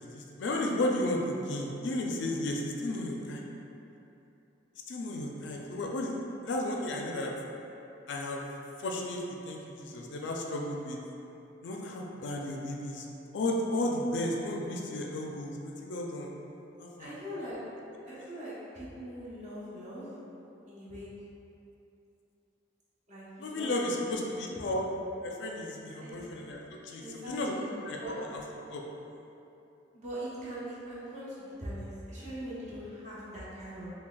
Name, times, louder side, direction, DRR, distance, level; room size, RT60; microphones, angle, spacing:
voice 1, 0.1-3.4 4.9-6.2 6.4-7.3 8.1-8.5 8.8-11.0 11.6-13.1 13.3-16.3 16.8-17.1 23.4-24.9 25.2-27.5 27.8-28.4 28.7-28.8, left 1 dB, 75° left, 0 dB, 0.4 m, -33 dB
voice 2, 17.0-17.6 18.0-20.1 20.7-21.1 23.1-24.0 26.0-26.3 27.0-27.7 28.0-28.2 29.9-33.9, equal, 40° right, -10 dB, 1.0 m, -41 dB
5.7 x 2.3 x 2.3 m, 2.8 s
head